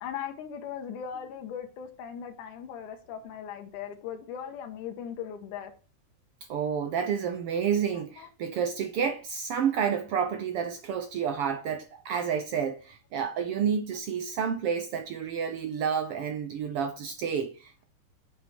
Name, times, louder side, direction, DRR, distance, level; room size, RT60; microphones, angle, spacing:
voice 1, 0.0-5.7 7.9-8.3, left 8 dB, 75° left, 2.5 m, -39 dB
voice 2, 6.5-17.8, right 7 dB, 75° right, 1.3 m, -30 dB
7.6 x 7.4 x 4.3 m
omnidirectional pair, 3.7 m